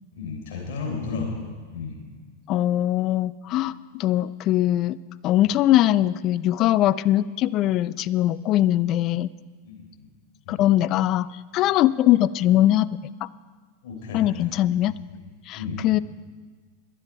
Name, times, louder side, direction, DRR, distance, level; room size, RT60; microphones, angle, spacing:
voice 1, 0.1-1.3 1.7-2.0 5.4-5.5 9.6-9.9 10.5-10.6 13.8-14.4 15.1-15.2 15.5-15.8, left 5 dB, 50° left, 0 dB, 4.0 m, -33 dB
voice 2, 2.5-5.0 5.2-9.3 10.5-11.3 11.5-12.9 14.1-14.9 15.5-16.0, left 13 dB, 35° left, 17 dB, 0.3 m, -21 dB
22.0 x 7.7 x 4.7 m, 1.5 s
figure-of-eight pair, 90°, 0 cm